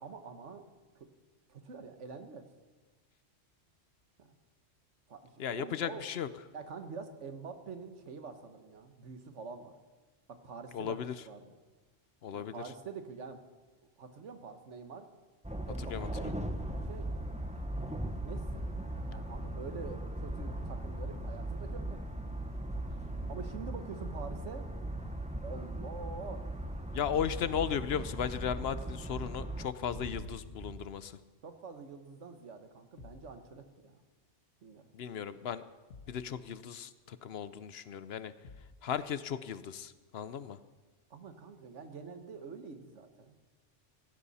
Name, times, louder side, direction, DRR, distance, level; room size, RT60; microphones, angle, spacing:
voice 1, 0.0-1.1 1.5-2.4 4.2-4.3 5.1-5.2 5.5-6.1 6.5-9.7 10.3-11.0 11.2-11.5 12.3-13.4 14.0-15.1 15.7-16.3 16.9-17.1 18.2-18.6 19.1-22.3 23.3-24.7 25.4-26.4 31.4-34.0 34.6-34.8 41.1-43.4, right 5 dB, 75° right, 7 dB, 1.6 m, -46 dB
voice 2, 5.4-6.3 10.7-11.1 12.2-12.6 15.8-16.1 26.9-31.2 34.9-35.6 36.1-38.3 38.8-40.6, left 8 dB, 65° left, 14 dB, 0.8 m, -36 dB
sound 1, 15.4-29.7, right 1 dB, 5° right, 0.7 m, -38 dB
sound 2, 21.9-24.7 25.1-30.7, right 1 dB, 30° left, 3.5 m, -52 dB
sound 3, 30.2-30.6 33.0-33.3 35.9-36.3 38.4-38.8, left 4 dB, 90° left, 1.7 m, -52 dB
17.5 x 15.5 x 4.2 m, 1.3 s
omnidirectional pair, 1.2 m